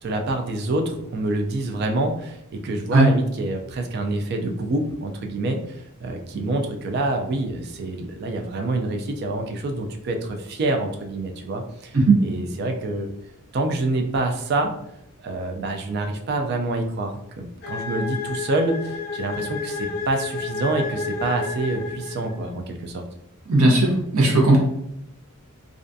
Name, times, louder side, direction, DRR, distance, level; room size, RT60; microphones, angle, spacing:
voice 1, 0.0-13.1 13.5-14.7 15.2-23.0, right 2 dB, 45° right, 4 dB, 0.3 m, -27 dB
sound 1, 17.6-22.5, left 4 dB, 45° left, 0.6 m, -31 dB
voice 2, 23.5-24.6, right 2 dB, 80° right, -1 dB, 0.7 m, -16 dB
2.4 x 2.2 x 2.5 m, 0.78 s
head